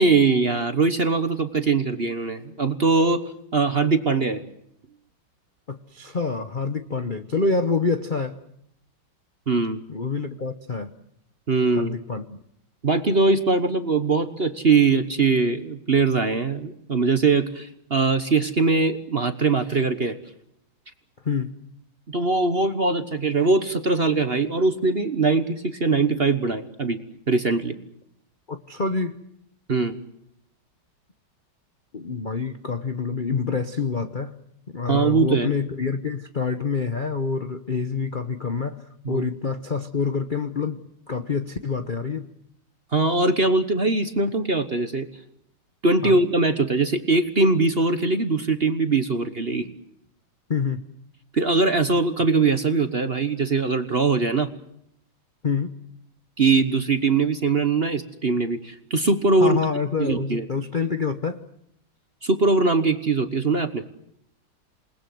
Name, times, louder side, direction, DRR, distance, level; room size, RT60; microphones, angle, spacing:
voice 1, 0.0-3.2 3.5-4.4 9.5-9.8 11.5-12.0 12.8-20.2 22.1-27.0 27.3-27.8 29.7-30.0 34.9-35.5 39.0-39.3 42.9-45.1 45.8-49.7 51.3-54.5 56.4-59.6 60.0-60.5 62.2-63.8, right 3 dB, 35° right, 9 dB, 1.2 m, -21 dB
voice 2, 5.7-8.4 9.9-10.9 11.8-12.4 21.2-21.5 28.5-29.2 31.9-34.4 34.7-38.8 39.1-42.3 46.0-46.2 50.5-50.8 55.4-55.7 59.4-61.4, left 4 dB, 40° left, 8 dB, 0.8 m, -27 dB
28.0 x 20.5 x 7.9 m, 0.74 s
omnidirectional pair, 2.3 m